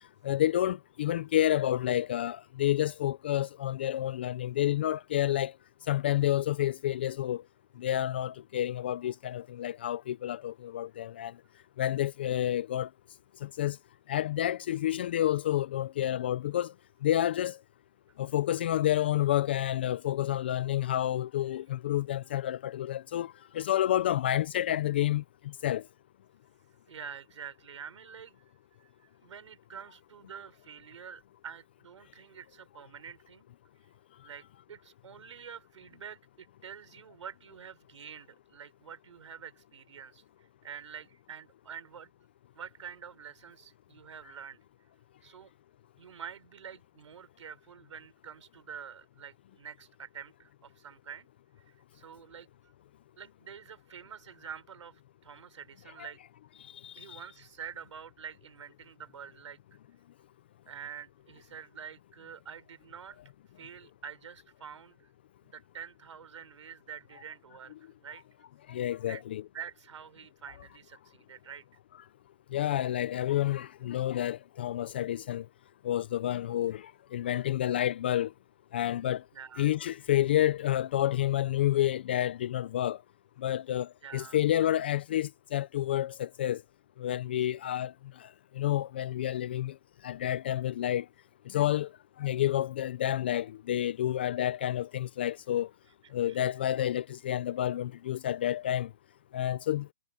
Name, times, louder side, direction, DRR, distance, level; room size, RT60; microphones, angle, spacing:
voice 1, 0.2-5.5 5.9-7.4 7.8-11.3 11.8-12.9 13.4-13.8 14.1-16.7 17.0-17.6 18.2-25.2 25.6-25.8 56.8-57.2 68.7-69.4 72.5-75.5 75.8-78.3 78.7-79.2 79.6-83.0 83.4-86.6 87.0-88.3 88.5-89.8 90.0-91.1 91.5-91.9 92.2-95.7 96.1-98.9 99.3-99.9, left 12 dB, 20° left, 0.4 m, -29 dB
voice 2, 26.9-28.4 28.8-33.5 34.2-42.1 42.5-44.6 45.2-45.5 46.0-51.3 51.7-52.5 53.2-56.2 57.0-59.8 60.7-63.2 63.6-65.1 65.4-68.2 69.1-69.2 69.5-71.6 79.3-79.7 84.0-84.4 96.0-96.4, right 7 dB, 60° right, 4.1 m, -47 dB
hypercardioid pair, 165°, 17 cm